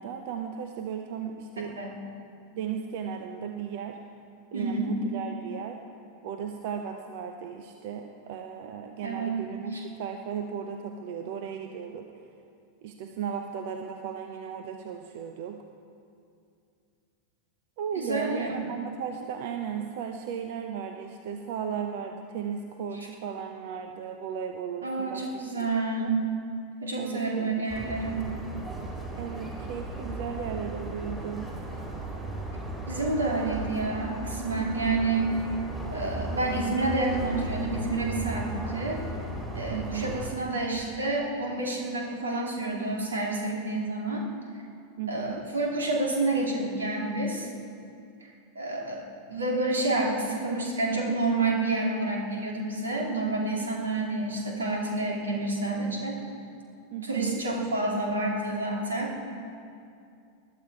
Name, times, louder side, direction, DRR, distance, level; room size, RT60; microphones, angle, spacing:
voice 1, 0.0-1.8 2.5-4.0 4.5-5.8 6.2-12.1 12.8-15.6 17.8-25.2 25.6-25.7 26.0-26.2 27.0-28.1 29.2-31.5 39.7-40.1 45.0-45.4 56.9-57.4, right 7 dB, 50° right, 5 dB, 0.8 m, -36 dB
voice 2, 4.5-4.9 9.0-9.4 9.7-9.8 18.0-18.5 18.9-19.0 24.8-26.2 26.8-28.3 32.9-35.4 35.9-39.0 39.5-44.2 45.1-47.5 48.2-48.3 48.5-49.0 49.3-56.2 57.0-59.1, right 2 dB, 70° right, -1 dB, 2.7 m, -29 dB
sound 1, 27.7-40.3, right 2 dB, 10° right, 4.5 m, -36 dB
20.5 x 12.0 x 4.8 m, 2.5 s
figure-of-eight pair, 90°, 0 cm